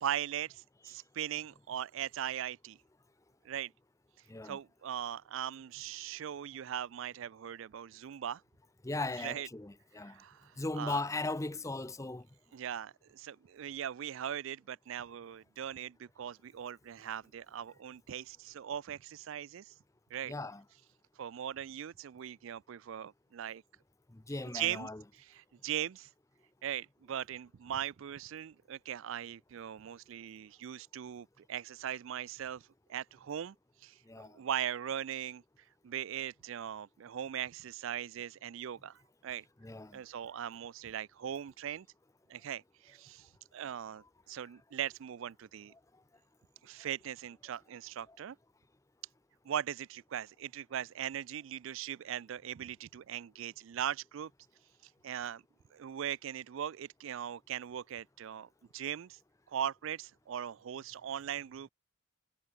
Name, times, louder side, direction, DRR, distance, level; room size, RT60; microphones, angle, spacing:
voice 1, 0.0-2.8 3.4-3.7 4.4-8.4 9.2-9.5 10.0-11.0 12.5-19.7 20.1-20.3 21.2-23.6 24.5-24.9 25.2-26.1 26.6-33.5 33.8-34.0 34.3-35.4 35.8-39.4 39.9-41.9 42.3-45.7 46.6-48.4 49.4-54.3 55.0-55.4 55.7-59.2 59.5-61.7, right 10 dB, 65° right, 0.3 m, -39 dB
voice 2, 8.8-10.2 10.6-12.2 20.3-20.6 24.1-25.0 34.1-34.4 39.6-40.0 48.1-48.2, left 2 dB, 15° left, 0.5 m, -38 dB
head